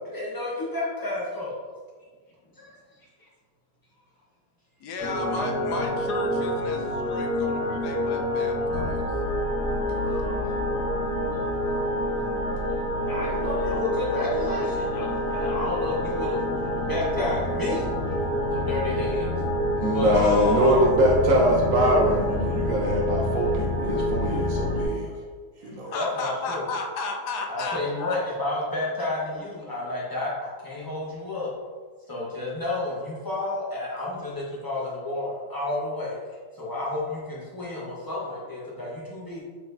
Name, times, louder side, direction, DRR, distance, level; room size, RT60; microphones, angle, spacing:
voice 1, 0.1-1.6 2.6-2.7 13.1-16.5 16.9-17.9 18.5-19.4 19.9-20.6 20.9-21.0 24.0-24.1 24.7-25.2 25.9-26.7 27.5-31.5 32.1-36.2 36.5-39.4, left 2 dB, 15° left, -6 dB, 0.8 m, -31 dB
voice 2, 4.8-9.0 10.0-10.6 20.1-21.0 25.9-28.2, left 3 dB, 80° left, 3 dB, 1.2 m, -33 dB
sound 1, 5.0-24.9, left 1 dB, 65° left, 1.7 m, -27 dB
voice 3, 19.8-25.1 25.6-25.9, right 1 dB, 65° right, -1 dB, 0.9 m, -23 dB
4.3 x 4.2 x 2.6 m, 1.5 s
omnidirectional pair, 1.8 m